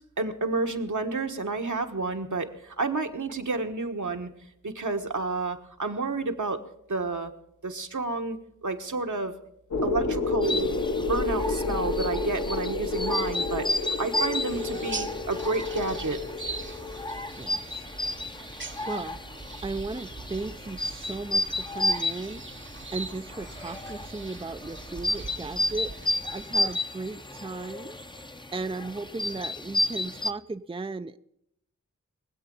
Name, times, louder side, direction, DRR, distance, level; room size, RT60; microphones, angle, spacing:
voice 1, 0.2-4.3 4.6-6.6 6.9-7.3 7.6-9.3 9.8-10.7 11.1-16.2, right 3 dB, 70° right, 5 dB, 1.5 m, -30 dB
sound 1, 9.7-17.5, left 3 dB, 65° left, 1.5 m, -30 dB
sound 2, 10.4-30.3, left 1 dB, 15° left, 0.8 m, -32 dB
sound 3, 14.5-26.7, right 3 dB, 40° right, 1.0 m, -42 dB
voice 2, 17.4-17.9 18.8-19.2 19.6-22.4 22.9-25.9 26.3-28.0 28.5-31.2, right 3 dB, 15° right, 9 dB, 0.5 m, -36 dB
22.5 x 8.2 x 5.4 m, 0.76 s
wide cardioid pair, 50°, 32 cm